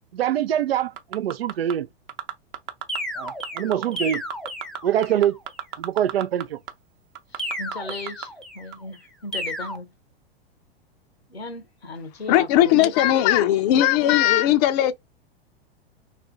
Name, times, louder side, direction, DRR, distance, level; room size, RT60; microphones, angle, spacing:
voice 1, 0.1-1.9 3.2-4.2 4.8-5.4 5.8-6.6, right 10 dB, 75° right, 0.5 m, -24 dB
sound 1, 1.0-1.7 2.1-3.0 3.3-3.9 4.1-6.4 6.7-6.8 7.1-8.3 8.7-8.8, right 10 dB, 35° right, 0.8 m, -32 dB
sound 2, 2.9-5.3 7.4-8.8 9.3-9.8, left 1 dB, ahead, 0.6 m, -33 dB
voice 2, 7.3-9.9 11.3-13.0, left 2 dB, 90° left, 1.1 m, -36 dB
voice 3, 12.3-14.9, left 12 dB, 40° left, 0.5 m, -18 dB
3.3 x 2.7 x 3.7 m
figure-of-eight pair, 95°, 30 cm